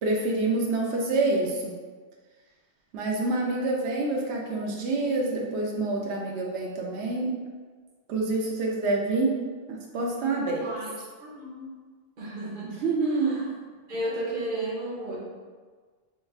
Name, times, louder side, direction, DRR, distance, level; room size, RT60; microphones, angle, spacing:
voice 1, 0.0-1.7 2.9-7.4 8.1-9.3 9.7-10.6 12.8-13.5, right 2 dB, 80° right, -1 dB, 0.9 m, -27 dB
voice 2, 10.6-10.9 11.2-11.7 12.2-12.7 13.0-13.4 13.9-15.2, right 1 dB, 45° right, -6 dB, 0.9 m, -33 dB
4.3 x 3.2 x 2.3 m, 1.5 s
omnidirectional pair, 1.1 m